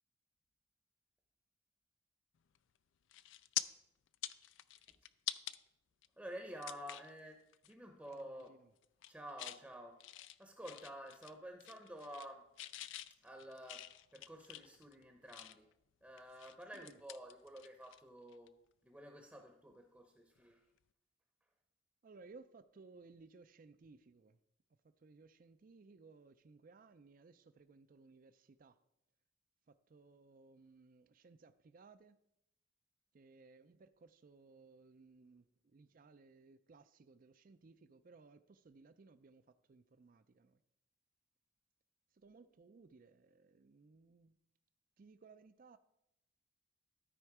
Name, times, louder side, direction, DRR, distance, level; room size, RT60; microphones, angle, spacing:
sound 1, 2.5-2.8 3.1-3.6 4.1-5.6 6.0-6.1 6.6-7.1 7.5-7.7 8.0-8.5 8.8-9.6 10.0-11.3 11.6-12.3 12.6-15.7 16.2-18.0 18.3-18.5 20.4-20.5, left 14 dB, 65° left, 0.3 m, -46 dB
voice 1, 6.2-8.5 9.1-12.5 13.2-13.8 14.1-15.7 16.0-18.5 18.8-20.6, equal, 5° right, 0.7 m, -51 dB
voice 2, 8.1-8.7 16.7-17.0 22.0-24.4 24.7-28.8 29.7-32.2 33.1-40.6 42.1-44.4 45.0-45.8, right 4 dB, 45° right, 0.4 m, -61 dB
12.5 x 4.4 x 4.8 m
head